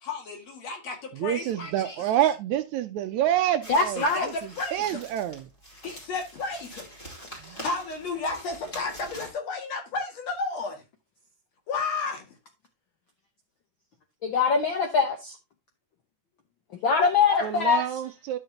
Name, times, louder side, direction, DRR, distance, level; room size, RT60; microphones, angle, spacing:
voice 1, 0.0-2.1 4.0-4.3 4.6-5.0 5.7-6.9 7.4-10.8 11.7-12.3, left 4 dB, 55° left, 3.1 m, -33 dB
voice 2, 1.2-4.0 4.7-5.4 7.5-7.6 17.4-18.4, right 11 dB, 75° right, 1.8 m, -27 dB
sound 1, 3.6-9.3, equal, 15° left, 2.5 m, -45 dB
voice 3, 3.7-4.3 14.2-15.4 16.8-17.8, left 5 dB, 75° left, 1.1 m, -23 dB
11.5 x 6.5 x 2.8 m
omnidirectional pair, 3.7 m